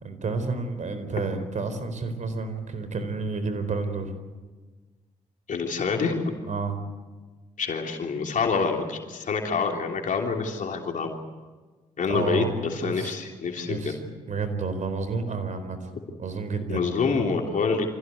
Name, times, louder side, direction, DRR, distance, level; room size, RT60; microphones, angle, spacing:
voice 1, 0.0-4.1 6.5-6.8 12.1-12.5 12.8-13.2 13.7-14.0 14.3-15.9 16.2-16.9, right 4 dB, 55° right, 10 dB, 4.4 m, -30 dB
voice 2, 5.5-6.3 7.6-11.2 12.0-14.0 16.7-17.9, left 5 dB, 60° left, 2 dB, 3.3 m, -27 dB
25.5 x 16.0 x 9.6 m, 1.3 s
supercardioid pair, 55°, 15 cm